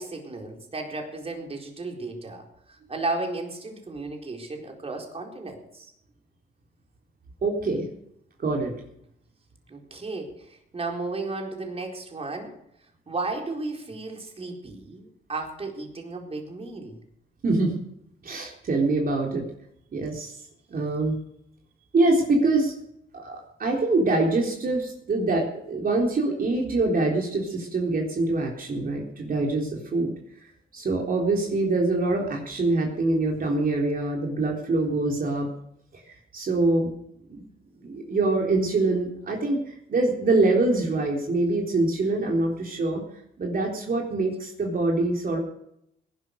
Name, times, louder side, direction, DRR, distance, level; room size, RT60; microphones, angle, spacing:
voice 1, 0.0-5.9 9.7-12.6 13.1-17.0, right 3 dB, 30° right, 2 dB, 4.4 m, -34 dB
voice 2, 7.4-7.9 8.4-8.7 17.4-17.7 18.2-19.5 19.9-20.4 20.7-21.2 21.9-22.7 23.1-30.1 30.7-35.5 35.9-36.0 36.3-36.9 37.3-37.5 37.8-43.0 43.4-45.4, right 2 dB, 45° right, -1 dB, 3.8 m, -24 dB
18.0 x 11.5 x 6.6 m, 0.77 s
cardioid pair, 90°, 20 cm